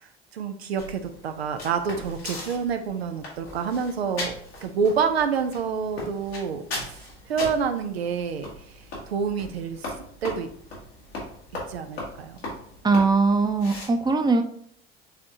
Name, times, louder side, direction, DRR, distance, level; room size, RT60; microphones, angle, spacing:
voice 1, 0.3-4.3 4.6-7.0 7.3-8.5 9.1-9.9 10.2-10.5 11.7-12.4, right 6 dB, 90° right, 7 dB, 0.5 m, -27 dB
sound 1, 0.8-13.9, left 1 dB, 85° left, 1.6 m, -39 dB
voice 2, 12.8-14.4, right 3 dB, 15° right, 7 dB, 0.6 m, -20 dB
5.5 x 3.5 x 2.7 m, 0.64 s
hypercardioid pair, 60°, 30 cm